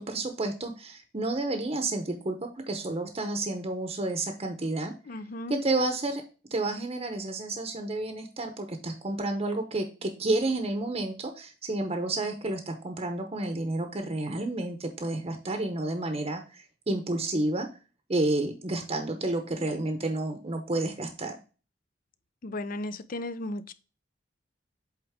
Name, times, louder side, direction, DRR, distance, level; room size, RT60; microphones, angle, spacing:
voice 1, 0.0-4.9 5.5-6.2 6.5-17.7 18.1-21.4, right 2 dB, 35° right, 0.8 m, -30 dB
voice 2, 5.1-5.6 22.4-23.7, left 2 dB, 50° left, 0.5 m, -35 dB
8.1 x 3.6 x 3.6 m
head